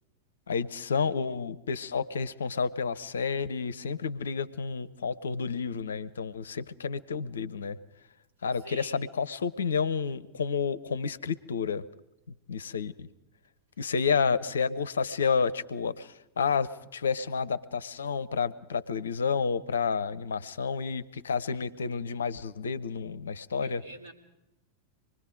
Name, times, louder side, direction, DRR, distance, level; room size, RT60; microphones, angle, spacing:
voice 1, 0.5-7.8 8.4-11.8 12.5-13.1 13.8-23.8, left 5 dB, 70° left, 17 dB, 0.6 m, -30 dB
voice 2, 8.6-9.0 23.6-24.1, right 1 dB, 60° right, 1 dB, 3.4 m, -46 dB
25.5 x 20.5 x 5.0 m, 0.93 s
figure-of-eight pair, 90°, 0 cm